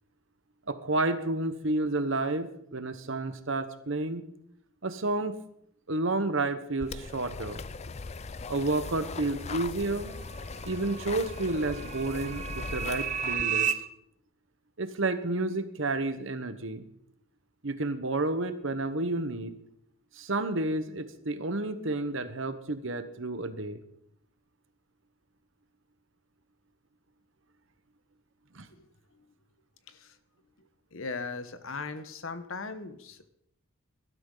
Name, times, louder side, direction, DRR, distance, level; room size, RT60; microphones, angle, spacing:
voice 1, 0.7-4.2 4.8-5.4 5.9-7.7 8.5-10.2 10.6-13.7 14.8-16.8 17.6-19.5 20.2-23.8 28.5-28.7, right 2 dB, 60° right, 10 dB, 1.1 m, -30 dB
sound 1, 6.8-13.4, left 4 dB, 30° left, 0.4 m, -39 dB
sound 2, 9.4-13.7, right 8 dB, 35° right, 0.8 m, -34 dB
voice 2, 28.7-29.3 29.9-30.2 30.6-33.3, left 4 dB, 65° left, 10 dB, 1.2 m, -39 dB
18.0 x 12.5 x 3.9 m, 0.73 s
head